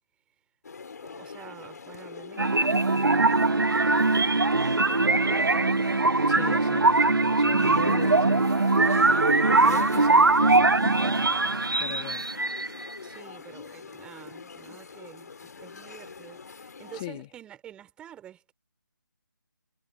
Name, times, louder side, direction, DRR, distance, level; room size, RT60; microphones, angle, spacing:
sound 1, 0.6-17.0, left 5 dB, 50° left, 5.5 m, -43 dB
voice 1, 1.0-5.9 13.0-15.3 15.6-18.5, right 10 dB, 10° right, 4.1 m, -49 dB
sound 2, 2.4-13.0, right 3 dB, 80° right, 0.9 m, -22 dB
voice 2, 6.3-8.9 9.6-12.3 16.9-17.3, left 18 dB, 20° left, 2.1 m, -39 dB
figure-of-eight pair, 155°, 11 cm